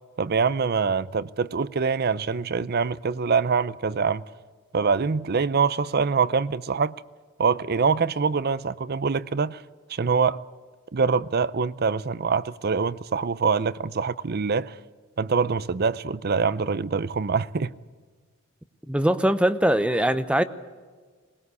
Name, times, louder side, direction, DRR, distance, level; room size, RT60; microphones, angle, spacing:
voice 1, 0.2-4.2 4.7-6.9 7.4-9.6 9.9-10.4 10.9-14.8 15.2-17.7, right 5 dB, 50° right, 0.6 m, -24 dB
voice 2, 18.9-20.4, right 1 dB, 5° right, 0.7 m, -21 dB
21.0 x 20.0 x 8.3 m
head